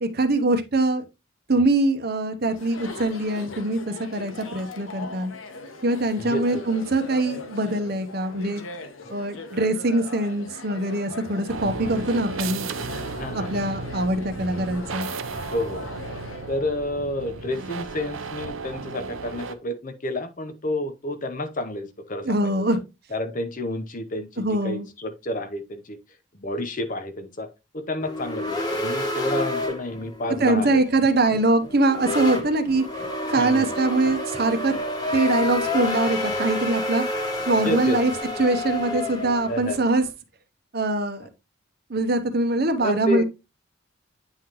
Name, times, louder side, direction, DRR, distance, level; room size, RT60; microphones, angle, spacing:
voice 1, 0.0-1.0 1.5-5.3 5.8-8.6 9.1-12.7 13.3-15.1 22.2-22.8 24.4-24.9 30.4-32.8 33.3-34.7 35.1-37.0 37.5-38.1 38.4-40.0 40.7-41.3 41.9-43.2, right 2 dB, 50° right, 0.9 m, -23 dB
Chatter, 2.4-16.6, left 3 dB, 75° left, 1.0 m, -40 dB
voice 2, 6.2-6.6 9.0-9.2 13.1-13.6 15.5-15.9 16.5-22.5 23.1-26.0 26.4-27.5 27.7-30.8 33.2-33.7 37.6-38.0 39.5-39.8 42.8-43.2, left 1 dB, 40° left, 0.8 m, -30 dB
sound 1, 11.5-19.6, right 4 dB, 80° right, 0.7 m, -34 dB
sound 2, 28.0-40.1, left 1 dB, 20° left, 1.2 m, -29 dB
9.0 x 3.8 x 2.9 m
head